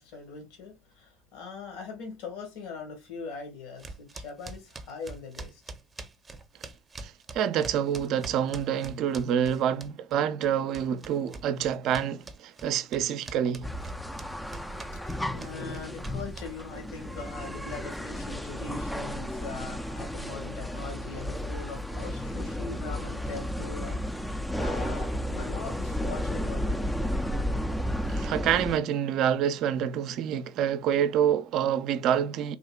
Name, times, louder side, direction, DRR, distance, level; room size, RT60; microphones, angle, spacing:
voice 1, 0.0-5.6 14.9-26.9 28.1-28.2, left 4 dB, 65° left, 1.5 m, -41 dB
sound 1, 3.8-10.1 10.4-16.8, right 3 dB, 20° right, 0.7 m, -44 dB
voice 2, 7.0-13.7 28.1-32.6, right 9 dB, 55° right, 0.4 m, -27 dB
sound 2, 13.6-28.8, equal, 5° left, 0.4 m, -33 dB
3.7 x 2.7 x 2.3 m
hypercardioid pair, 75°, 0 cm